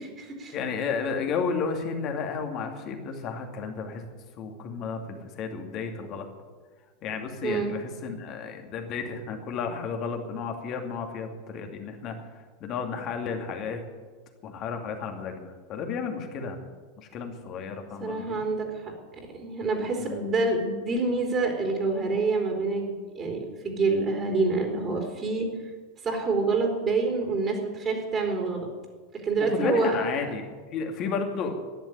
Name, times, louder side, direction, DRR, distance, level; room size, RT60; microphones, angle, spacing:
voice 1, 0.0-0.6 7.4-7.7 18.0-18.9 19.4-25.5 26.0-28.7 29.2-30.3, right 3 dB, 25° right, 1 dB, 3.3 m, -27 dB
voice 2, 0.5-4.0 4.4-6.3 7.0-12.2 12.6-13.8 14.4-16.7 17.0-18.4 20.0-20.2 29.4-30.5 30.7-31.6, left 5 dB, 35° left, 4 dB, 2.5 m, -32 dB
13.0 x 10.5 x 9.4 m, 1.4 s
figure-of-eight pair, 85°, 0 cm